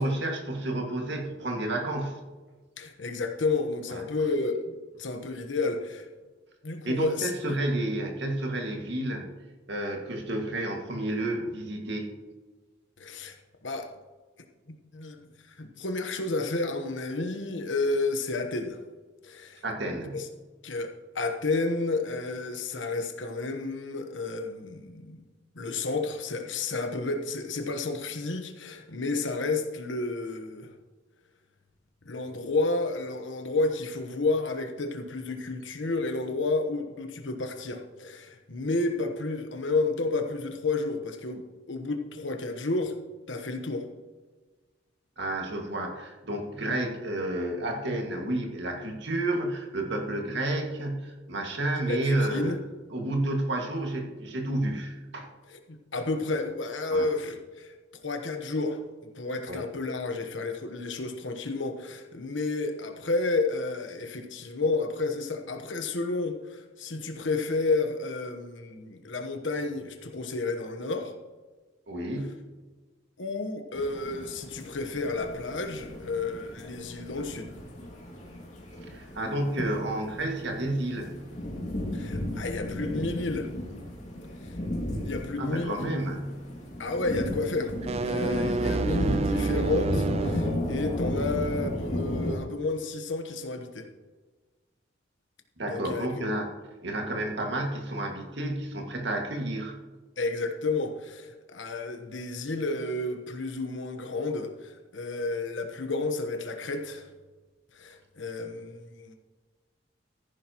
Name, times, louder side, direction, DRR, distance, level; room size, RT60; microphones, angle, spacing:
voice 1, 0.0-2.2 3.9-4.0 6.8-9.3 9.7-12.1 19.6-20.2 45.2-52.6 52.9-55.3 56.9-57.1 59.5-59.7 71.9-72.4 78.8-81.1 85.4-86.4 95.6-96.5 96.8-99.8, right 1 dB, 65° right, 2 dB, 2.0 m, -30 dB
voice 2, 2.8-6.1 6.6-7.6 13.0-13.4 13.6-13.9 14.7-18.8 19.2-19.6 20.1-20.3 20.6-25.2 25.5-30.7 32.0-42.9 43.3-43.9 51.9-52.6 55.5-57.7 58.0-71.1 73.2-77.5 81.9-83.5 84.4-84.5 85.0-86.0 86.8-87.7 88.0-93.9 95.7-96.1 100.2-107.1 107.7-109.2, left 3 dB, 75° left, 5 dB, 1.2 m, -31 dB
sound 1, 73.7-92.4, left 1 dB, 40° left, 2.4 m, -34 dB
sound 2, 87.7-90.5, right 3 dB, 35° right, 0.3 m, -29 dB
14.5 x 10.5 x 3.0 m, 1.3 s
head